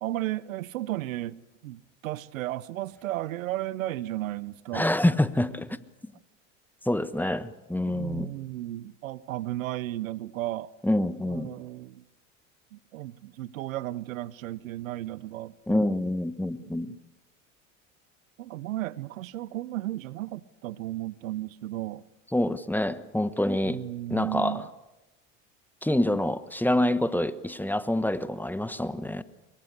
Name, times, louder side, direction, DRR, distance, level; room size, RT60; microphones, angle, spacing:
voice 1, 0.0-4.9 7.9-10.7 11.2-12.0 12.7-15.9 16.6-17.0 18.4-22.0 23.6-24.7, right 15 dB, 85° right, 0.9 m, -34 dB
voice 2, 4.7-5.8 6.8-8.3 10.8-11.5 15.7-16.9 22.3-23.8 24.1-24.7 25.8-29.2, left 1 dB, 5° left, 1.2 m, -26 dB
24.5 x 23.0 x 8.2 m
hypercardioid pair, 80°, 39 cm